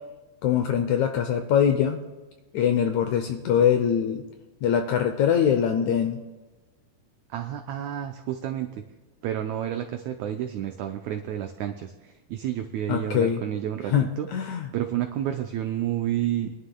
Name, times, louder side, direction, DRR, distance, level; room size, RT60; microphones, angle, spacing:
voice 1, 0.4-2.0 2.5-4.3 4.6-6.2 12.9-13.4 13.9-14.7, left 8 dB, 80° left, 6 dB, 1.7 m, -23 dB
voice 2, 7.3-8.7 9.2-14.3 14.7-16.5, right 11 dB, 90° right, 5 dB, 1.6 m, -30 dB
24.0 x 11.5 x 2.3 m, 1.2 s
omnidirectional pair, 4.0 m